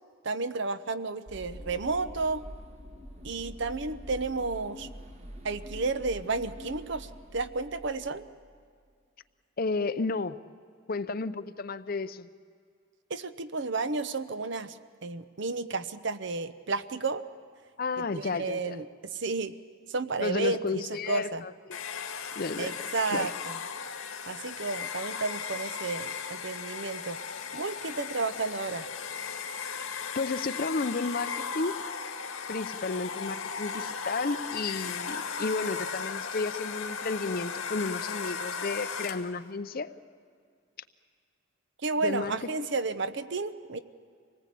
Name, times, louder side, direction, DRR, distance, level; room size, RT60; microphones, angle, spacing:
voice 1, 0.2-2.4 3.2-4.9 5.4-8.3 13.1-17.2 18.0-18.9 19.1-19.5 19.9-21.4 22.6-23.6 24.3-27.2 27.5-28.9 41.8-43.8, right 3 dB, 55° right, 12 dB, 0.8 m, -32 dB
sound 1, 1.3-8.7, equal, 30° right, 1.3 m, -45 dB
voice 2, 9.6-10.4 10.9-12.3 17.8-18.8 20.2-21.8 22.4-22.7 23.1-23.3 29.7-29.9 30.1-31.8 32.5-39.9 42.0-42.4, left 3 dB, 45° left, 13 dB, 0.6 m, -32 dB
Domestic sounds home sounds, 21.7-39.4, left 6 dB, 85° left, 1.8 m, -37 dB
25.5 x 19.0 x 8.4 m, 2.1 s
head